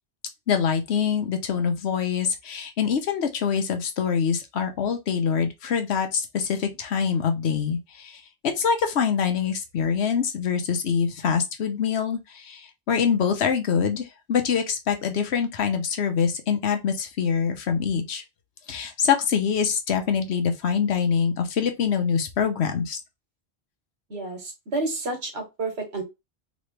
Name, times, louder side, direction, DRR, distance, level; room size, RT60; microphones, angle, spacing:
voice 1, 0.5-18.2 18.7-23.0, left 7 dB, 85° left, 1.1 m, -25 dB
voice 2, 24.1-26.0, right 2 dB, 90° right, 1.7 m, -30 dB
3.2 x 3.0 x 3.2 m
omnidirectional pair, 1.1 m